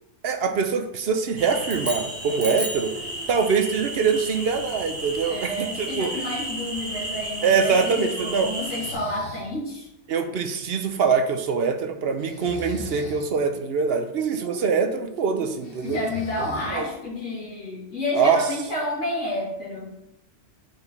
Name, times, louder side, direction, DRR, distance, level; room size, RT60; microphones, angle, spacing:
voice 1, 0.2-2.9 3.3-6.3 7.4-8.5 10.1-16.0 16.7-16.9 18.1-18.5, right 5 dB, 60° right, 7 dB, 0.9 m, -24 dB
sound 1, 1.4-8.9, right 1 dB, 40° right, 2.0 m, -34 dB
sound 2, 1.6-3.0, right 1 dB, 10° right, 0.9 m, -33 dB
voice 2, 2.8-3.3 5.2-9.9 14.3-20.0, left 1 dB, 90° left, -8 dB, 2.3 m, -31 dB
Breathing, 8.6-9.5 12.2-13.2 15.6-17.0, left 2 dB, 50° left, 1.5 m, -39 dB
5.1 x 4.5 x 5.3 m, 0.83 s
omnidirectional pair, 1.2 m